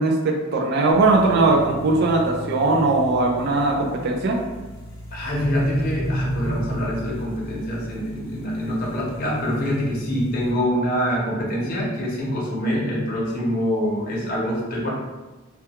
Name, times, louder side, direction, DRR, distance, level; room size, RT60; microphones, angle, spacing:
voice 1, 0.0-4.4, right 3 dB, 55° right, 0 dB, 0.3 m, -19 dB
sound 1, 0.9-10.5, equal, 90° left, 0.7 m, -33 dB
voice 2, 5.1-14.9, equal, 45° left, -4 dB, 0.7 m, -25 dB
2.2 x 2.2 x 2.8 m, 1.2 s
head